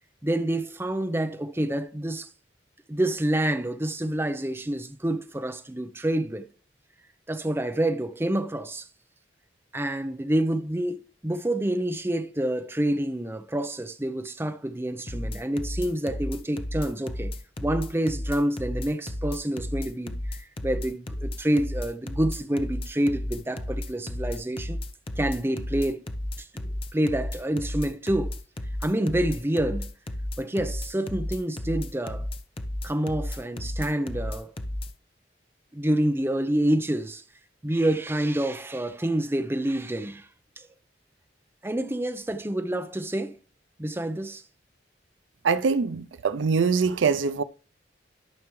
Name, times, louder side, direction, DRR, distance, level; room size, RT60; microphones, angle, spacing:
voice 1, 0.2-2.3 2.9-6.4 7.3-8.9 9.7-17.3 17.6-24.8 25.2-26.0 26.4-28.3 28.8-29.9 30.4-32.3 32.8-34.5 35.7-37.2 37.6-40.3 40.6-40.7 41.6-43.4 43.8-44.4, right 1 dB, 15° right, 0.6 m, -27 dB
sound 1, 15.1-34.9, left 1 dB, 30° left, 0.7 m, -33 dB
voice 2, 45.4-47.4, right 5 dB, 85° right, 0.5 m, -23 dB
12.5 x 6.0 x 3.1 m
head